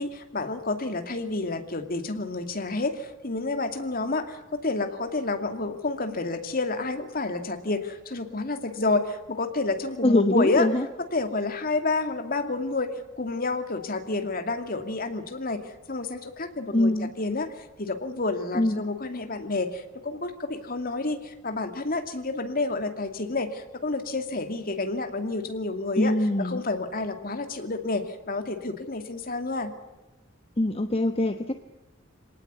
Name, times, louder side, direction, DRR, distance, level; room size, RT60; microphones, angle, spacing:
voice 1, 0.0-10.7 11.1-16.9 17.2-29.7, left 3 dB, 45° left, 7 dB, 2.5 m, -29 dB
voice 2, 10.0-10.9 16.7-17.1 18.5-18.8 26.0-26.6 30.6-31.5, left 1 dB, 30° left, 7 dB, 1.1 m, -23 dB
26.5 x 18.5 x 9.5 m, 1.0 s
head